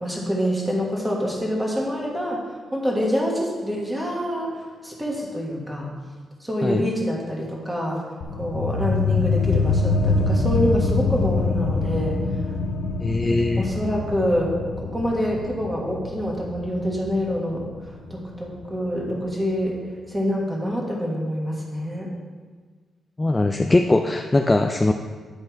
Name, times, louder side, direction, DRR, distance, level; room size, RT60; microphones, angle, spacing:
voice 1, 0.0-2.4 2.7-4.6 4.8-5.9 6.4-8.0 8.3-12.2 13.6-17.6 18.1-19.8 20.1-22.1, equal, 10° right, -2 dB, 1.5 m, -26 dB
sound 1, 8.2-19.3, left 3 dB, 80° left, 0.8 m, -25 dB
voice 2, 13.0-13.7 23.2-24.9, left 2 dB, 15° left, 4 dB, 0.3 m, -20 dB
10.0 x 5.5 x 4.6 m, 1.5 s
wide cardioid pair, 170°, 0 cm